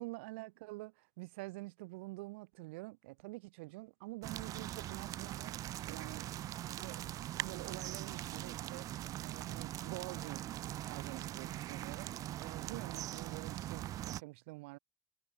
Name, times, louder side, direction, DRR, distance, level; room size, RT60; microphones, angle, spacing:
voice 1, 0.0-5.5 5.9-8.9 9.2-10.4 10.8-12.1 12.4-14.8, right 24 dB, 90° right, 1.7 m, -47 dB
sound 1, 4.2-14.2, right 13 dB, 65° right, 0.5 m, -42 dB
supercardioid pair, 65°, 6 cm